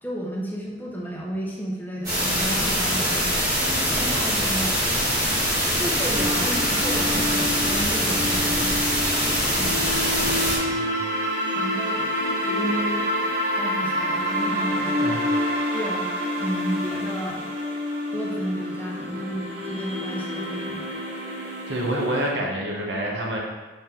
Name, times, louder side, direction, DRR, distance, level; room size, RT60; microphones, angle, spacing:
voice 1, 0.0-3.3 3.6-4.8 5.7-8.7 9.4-9.9 11.5-15.2 15.7-16.1 16.4-17.5 18.1-21.0, right 1 dB, 10° left, -4 dB, 0.8 m, -32 dB
sound 1, 2.0-10.6, equal, 20° right, 1.9 m, -23 dB
sound 2, 6.1-22.3, equal, 55° right, 1.1 m, -28 dB
voice 2, 21.7-23.4, right 1 dB, 80° right, -2 dB, 1.2 m, -27 dB
5.4 x 4.6 x 3.8 m, 1.2 s
head